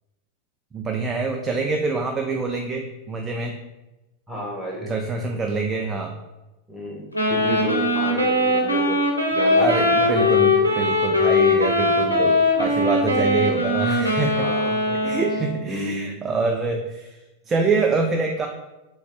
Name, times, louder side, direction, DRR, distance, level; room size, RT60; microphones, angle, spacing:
voice 1, 0.7-3.5 4.9-6.1 9.6-14.5 15.0-17.2 17.5-18.5, right 4 dB, 20° right, 3 dB, 0.4 m, -25 dB
voice 2, 4.3-4.9 6.7-9.0 9.3-10.3 10.7-10.8 14.3-15.1 15.6-16.2, left 1 dB, 5° right, -3 dB, 1.2 m, -31 dB
Wind instrument woodwind instrument, 7.1-15.6, left 2 dB, 90° right, 0.7 m, -20 dB
3.5 x 3.1 x 3.4 m, 1.0 s
figure-of-eight pair, 90°, 0 cm